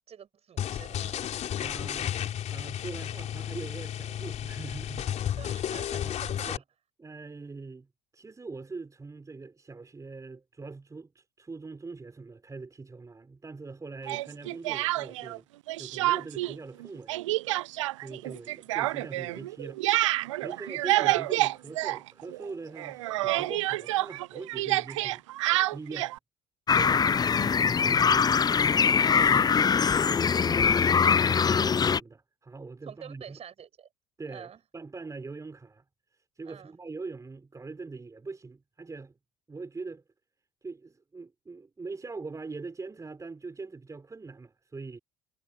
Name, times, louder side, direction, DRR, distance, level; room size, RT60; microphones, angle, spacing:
voice 1, 0.0-1.7 5.3-6.6 20.5-20.9 26.8-27.1 30.8-30.9 32.9-33.9 34.3-34.6 36.4-36.8, right 8 dB, 40° right, 7.1 m, -48 dB
sound 1, 0.6-6.6, left 10 dB, 45° left, 3.6 m, -33 dB
voice 2, 1.6-2.2 2.5-5.2 5.9-6.2 6.5-6.6 7.0-7.9 8.1-15.5 15.8-17.2 18.0-25.2 25.7-26.1 26.7-33.4 34.2-35.8 36.1-39.2 39.5-40.0 40.6-45.0, right 4 dB, 20° right, 4.1 m, -42 dB
Speech, 14.1-15.4 15.7-16.5 16.8-22.5 22.8-26.2, right 17 dB, 70° right, 0.5 m, -28 dB
sound 2, 26.7-32.0, left 6 dB, 25° left, 0.7 m, -22 dB
figure-of-eight pair, 60°, 16 cm